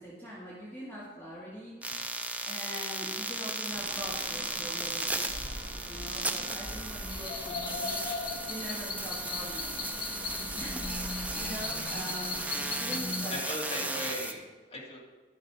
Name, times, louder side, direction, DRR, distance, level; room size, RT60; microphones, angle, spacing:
voice 1, 0.0-1.7 2.5-5.4 5.8-7.9 8.5-9.9 10.6-12.3 12.5-13.4 13.7-14.0, equal, 10° left, -9 dB, 2.1 m, -43 dB
sound 1, 1.8-14.3, right 2 dB, 10° right, 0.6 m, -36 dB
sound 2, 3.7-12.4, right 1 dB, 50° right, 2.3 m, -44 dB
sound 3, 7.1-13.3, left 4 dB, 65° left, 1.5 m, -37 dB
voice 2, 13.2-15.0, left 1 dB, 35° left, -4 dB, 2.3 m, -38 dB
11.5 x 6.7 x 4.9 m, 1.3 s
head